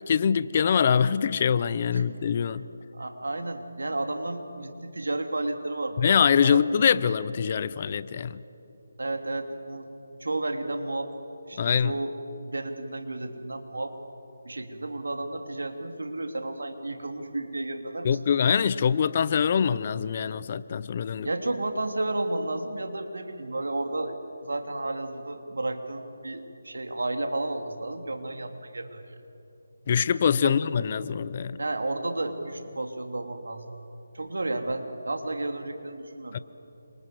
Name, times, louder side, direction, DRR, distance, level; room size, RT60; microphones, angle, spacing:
voice 1, 0.1-2.6 6.0-8.4 11.6-11.9 18.0-21.3 29.9-31.6 36.3-36.4, left 7 dB, 35° left, 16 dB, 0.7 m, -24 dB
voice 2, 2.9-6.6 9.0-11.1 11.5-12.1 12.4-13.9 14.4-18.1 21.2-29.0 30.4-30.6 31.6-33.7 34.1-36.4, right 2 dB, 85° right, 6 dB, 3.0 m, -32 dB
28.0 x 25.5 x 7.9 m, 2.9 s
figure-of-eight pair, 165°, 0 cm